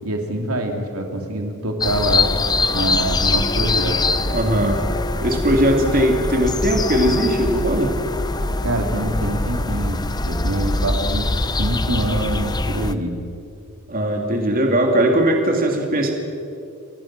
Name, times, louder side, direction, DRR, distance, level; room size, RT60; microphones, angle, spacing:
voice 1, 0.0-2.3 2.7-4.0 8.6-10.0 10.2-11.3 11.6-13.2, right 1 dB, 85° right, 2 dB, 3.3 m, -24 dB
sound 1, 1.8-12.9, left 2 dB, 20° left, 0.8 m, -23 dB
voice 2, 4.2-4.8 5.2-7.9 13.9-16.1, right 1 dB, 40° right, 2 dB, 2.8 m, -19 dB
29.5 x 22.5 x 6.2 m, 2.6 s
head